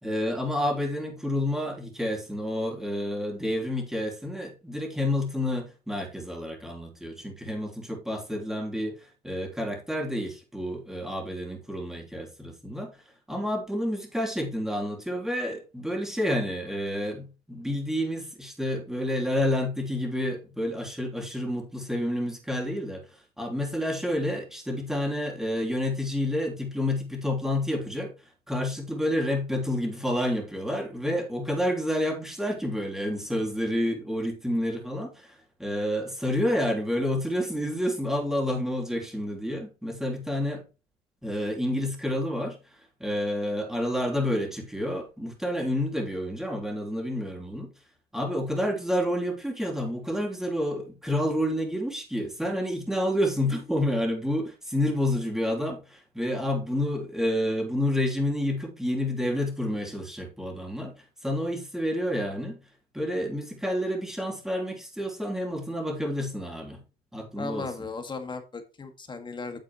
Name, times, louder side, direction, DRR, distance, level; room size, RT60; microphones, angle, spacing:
voice 1, 0.0-13.0 13.3-28.1 28.5-40.6 41.2-47.7 48.1-62.6 62.9-66.8 67.1-67.9, left 1 dB, 5° right, 3.1 m, -29 dB
voice 2, 67.4-69.6, left 4 dB, 25° left, 1.8 m, -36 dB
9.1 x 8.0 x 3.1 m
cardioid pair, 110°, 17 cm